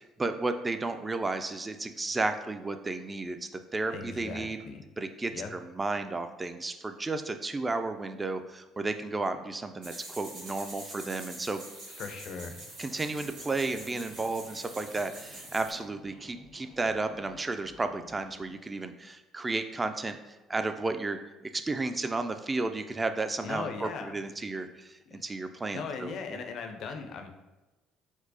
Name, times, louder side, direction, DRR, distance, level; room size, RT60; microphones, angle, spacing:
voice 1, 0.0-4.6 5.0-11.6 12.8-21.2 21.5-26.4, right 3 dB, 25° right, 8 dB, 0.3 m, -33 dB
voice 2, 3.9-4.8 5.3-5.5 12.0-12.6 23.4-24.2 25.1-25.2 25.7-27.3, left 5 dB, 60° left, 5 dB, 0.4 m, -38 dB
sound 1, 9.8-15.7, right 1 dB, 85° right, 1.4 m, -45 dB
sound 2, 12.9-18.5, equal, 55° right, 0.9 m, -54 dB
4.4 x 2.0 x 2.7 m, 1.1 s
hypercardioid pair, 65°, 0 cm